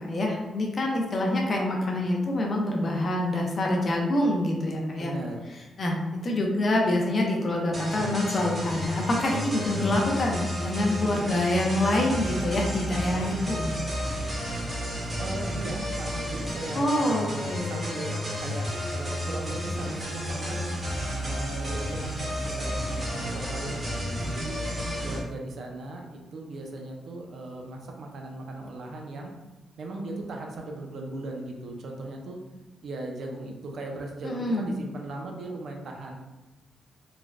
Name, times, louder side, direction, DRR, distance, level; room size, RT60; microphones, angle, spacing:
voice 1, 0.0-5.1 5.8-6.0 6.2-13.7 16.7-17.8 34.2-34.7, left 1 dB, 35° left, 0 dB, 0.4 m, -26 dB
voice 2, 5.0-5.4 15.2-20.6 21.2-24.6 25.0-29.3 29.8-32.4 32.8-36.2, right 2 dB, 55° right, 1 dB, 0.4 m, -38 dB
sound 1, 7.7-25.2, equal, 20° right, 0.8 m, -32 dB
3.2 x 2.1 x 2.4 m, 1.1 s
wide cardioid pair, 175°, 0 cm